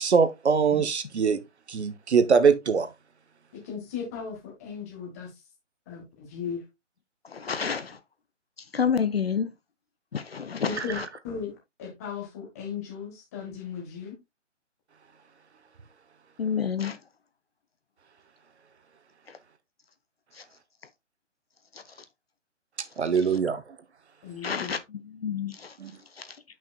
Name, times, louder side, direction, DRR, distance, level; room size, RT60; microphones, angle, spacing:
voice 1, 0.0-1.4 1.7-2.9 23.0-23.6 25.8-25.9, right 6 dB, 60° right, 0.9 m, -22 dB
voice 2, 3.5-5.4 5.9-6.6 10.6-11.0 11.2-14.2 24.2-24.7, left 6 dB, 15° left, 1.5 m, -36 dB
voice 3, 7.2-8.0 8.6-9.5 10.1-11.1 16.4-17.0 19.3-19.4 20.3-20.5 21.7-22.1 23.1-23.4 24.4-26.4, left 7 dB, 55° left, 0.6 m, -30 dB
7.7 x 5.7 x 2.3 m
hypercardioid pair, 170°, 37 cm